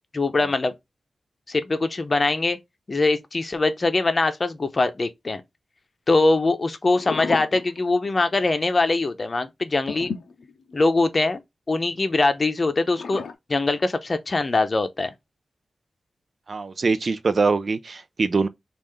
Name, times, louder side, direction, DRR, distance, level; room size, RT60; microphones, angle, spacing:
voice 1, 0.1-0.7 1.5-2.6 2.9-5.4 6.1-10.1 10.7-11.4 11.7-13.2 13.5-15.1, left 3 dB, 45° left, 0.6 m, -22 dB
sound 1, 6.9-8.2 8.6-8.7 9.9-11.1 12.9-13.3, left 5 dB, 90° left, 0.4 m, -33 dB
voice 2, 16.5-18.5, right 4 dB, 60° right, 0.4 m, -23 dB
3.2 x 2.5 x 3.6 m
cardioid pair, 65°, 0 cm